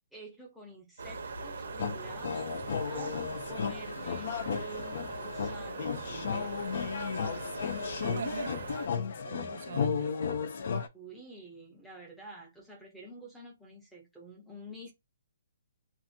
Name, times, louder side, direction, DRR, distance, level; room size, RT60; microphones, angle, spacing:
voice 1, 0.1-3.2 3.5-4.3 4.6-6.6 10.9-14.9, right 1 dB, ahead, 0.7 m, -49 dB
sound 1, 1.0-8.9, right 4 dB, 65° right, 1.0 m, -41 dB
sound 2, 1.8-10.9, left 6 dB, 45° left, 0.5 m, -34 dB
voice 2, 8.0-8.5 9.2-10.3, right 7 dB, 50° right, 0.3 m, -41 dB
2.5 x 2.5 x 2.7 m
hypercardioid pair, 175°, 0 cm